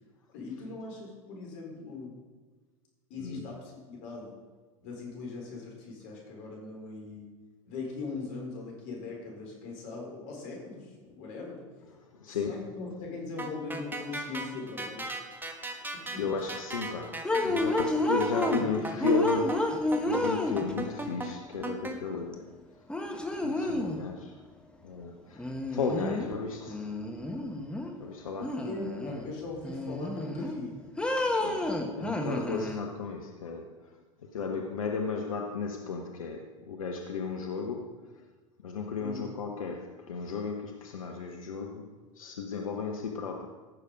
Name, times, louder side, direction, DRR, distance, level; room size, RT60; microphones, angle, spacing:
voice 1, 0.3-2.2 3.1-4.4 4.8-7.2 7.7-11.6 12.4-15.1 15.9-16.3 18.5-18.7 28.6-30.7 34.5-34.7 39.0-39.3, left 3 dB, 60° left, 4.3 m, -40 dB
voice 2, 3.2-3.5 11.9-12.8 15.5-15.7 16.2-22.6 23.3-24.4 24.8-26.9 28.0-28.7 31.4-38.2 38.6-43.5, left 4 dB, 80° left, 1.0 m, -35 dB
sound 1, 13.4-22.0, right 2 dB, 10° right, 1.5 m, -37 dB
sound 2, 17.2-18.6 19.0-20.9 22.3-22.4 22.9-24.0 25.4-26.3 26.7-27.9 28.4-29.3 29.6-30.6 31.0-32.8, left 2 dB, 5° left, 1.5 m, -30 dB
15.5 x 6.7 x 5.2 m
hypercardioid pair, 85°, 17 cm